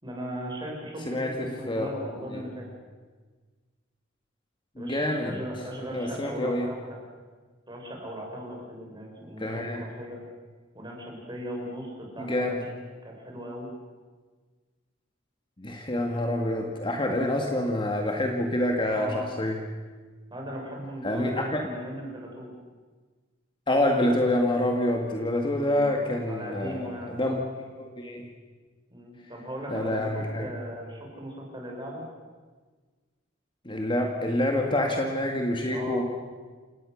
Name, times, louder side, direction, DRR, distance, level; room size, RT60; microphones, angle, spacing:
voice 1, 0.0-2.7 4.8-7.0 7.7-10.2 10.7-12.8 13.0-13.7 18.9-19.3 20.3-22.5 25.6-27.1 28.9-32.0 35.7-36.0, equal, 25° right, 0 dB, 5.7 m, -38 dB
voice 2, 1.1-1.9 2.3-2.4 4.8-5.4 5.9-6.7 9.4-9.8 12.2-12.6 15.6-19.6 21.0-21.6 23.7-27.4 27.8-28.3 29.7-30.5 33.7-36.0, left 1 dB, 25° left, 2 dB, 2.0 m, -27 dB
28.0 x 18.5 x 6.5 m, 1.4 s
head